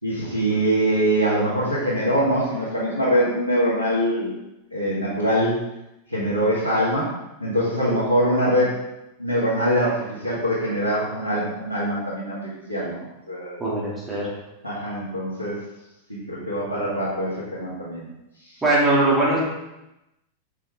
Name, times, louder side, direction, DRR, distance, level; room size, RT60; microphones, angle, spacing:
voice 1, 0.0-4.3 4.7-5.5 6.1-7.1 7.4-8.8 9.2-12.4 12.7-13.6 14.6-15.6 16.1-18.1, equal, 90° right, -11 dB, 2.2 m, -23 dB
voice 2, 13.6-14.3 18.6-19.4, right 2 dB, 15° right, -7 dB, 2.7 m, -20 dB
7.1 x 5.7 x 3.7 m, 0.92 s
figure-of-eight pair, 90°, 0 cm